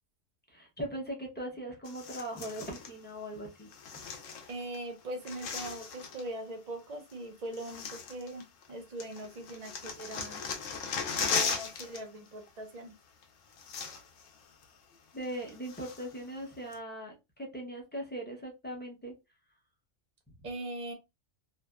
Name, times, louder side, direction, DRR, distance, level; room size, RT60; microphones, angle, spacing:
voice 1, 0.5-3.7 15.1-19.1, right 1 dB, 10° left, 0.5 m, -40 dB
sound 1, 1.9-2.9 3.7-4.8 5.0-6.3 7.1-7.2 7.5-8.7 9.0-12.0 12.3-12.5 13.2-13.3 13.5-14.3 14.6-14.7 15.2-16.2 16.7-16.8, left 5 dB, 75° left, 0.9 m, -37 dB
voice 2, 4.5-10.4 11.2-12.9 20.4-20.9, right 1 dB, 45° right, 0.5 m, -41 dB
2.7 x 2.1 x 2.2 m
omnidirectional pair, 1.3 m